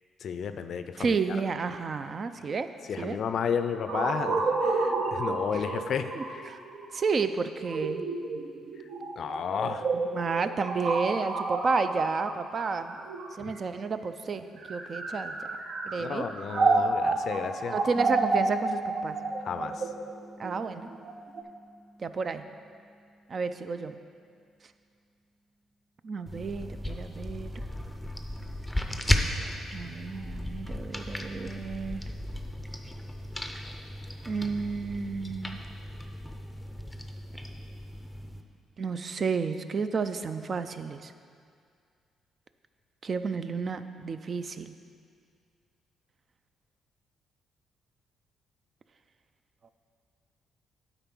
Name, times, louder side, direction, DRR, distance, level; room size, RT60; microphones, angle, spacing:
voice 1, 0.2-1.1 2.9-6.1 9.2-9.9 13.4-13.5 16.0-17.8 19.5-19.8, left 7 dB, 60° left, 9 dB, 0.4 m, -32 dB
voice 2, 1.0-2.7 3.0-3.2 5.5-5.6 6.2-6.6 6.9-8.1 10.1-13.0 13.4-16.3 17.7-19.2 20.4-20.9 22.0-22.4 23.3-24.0 26.0-27.5 29.7-32.0 34.3-35.6 38.8-41.1 43.0-44.7, right 4 dB, 45° right, 10 dB, 0.4 m, -31 dB
sound 1, 3.9-13.7 14.5-21.4, right 3 dB, 65° right, 0.7 m, -30 dB
sound 2, 17.9-23.5, right 3 dB, 25° right, 1.6 m, -47 dB
sound 3, 26.3-38.4, left 1 dB, 5° left, 0.6 m, -35 dB
9.0 x 4.0 x 6.0 m, 2.2 s
cardioid pair, 90°, 0 cm